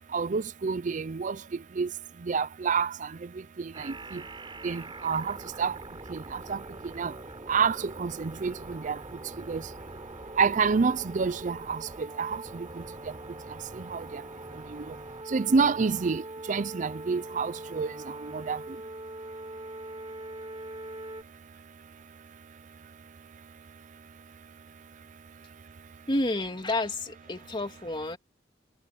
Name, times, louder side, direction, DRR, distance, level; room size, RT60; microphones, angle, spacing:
voice 1, 0.1-1.4 1.8-1.9 2.3-3.1 3.6-4.2 4.6-5.7 6.1-6.6 7.0-7.1 7.5-9.0 9.5-9.6 10.4-11.8 12.2-12.7 13.9-14.2 14.7-14.8 15.3-16.2 16.5-17.9 18.2-18.6, right 5 dB, 45° right, 0.5 m, -28 dB
sound 1, 3.7-21.2, right 2 dB, 25° right, 4.4 m, -43 dB
voice 2, 26.1-28.2, left 2 dB, 25° left, 3.0 m, -30 dB
head